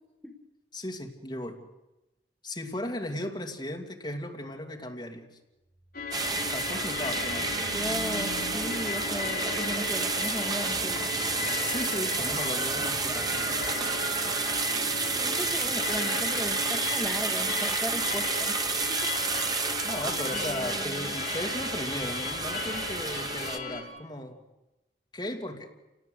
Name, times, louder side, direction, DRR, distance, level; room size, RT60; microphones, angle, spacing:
voice 1, 0.7-1.6 2.4-5.3 6.5-7.7 11.6-13.3 19.5-24.4 25.1-25.7, left 1 dB, 25° left, 2 dB, 2.6 m, -36 dB
sound 1, 5.7-18.4, right 3 dB, 80° right, 6.5 m, -45 dB
sound 2, 5.9-23.8, left 5 dB, 55° left, 5.2 m, -35 dB
sound 3, 6.1-23.6, right 4 dB, 20° right, 1.1 m, -30 dB
voice 2, 7.7-11.1 15.1-18.6 18.9-19.1 20.3-21.1, equal, 5° left, 0 dB, 1.6 m, -37 dB
28.5 x 18.5 x 8.1 m, 1.0 s
head